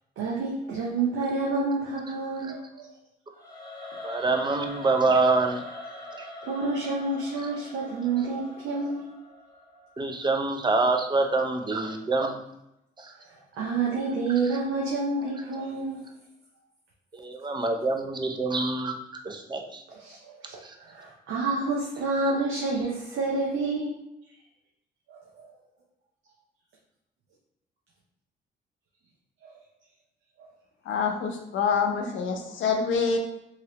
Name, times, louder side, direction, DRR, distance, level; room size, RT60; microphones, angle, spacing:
voice 1, 0.2-2.9 6.1-9.1 13.6-16.0 19.9-20.6 20.9-23.9 25.1-25.2, right 3 dB, 75° right, -3 dB, 0.7 m, -29 dB
Singing / Musical instrument, 3.3-10.4, left 1 dB, 20° left, 1.1 m, -43 dB
voice 2, 4.0-5.7 6.2-6.3 10.0-12.4 13.0-13.1 17.1-18.9 19.2-19.8 20.6-20.7, right 3 dB, 20° right, 4 dB, 0.5 m, -26 dB
voice 3, 30.9-33.2, left 5 dB, 75° left, 3 dB, 0.6 m, -26 dB
2.9 x 2.9 x 2.9 m, 0.85 s
cardioid pair, 90°, 20 cm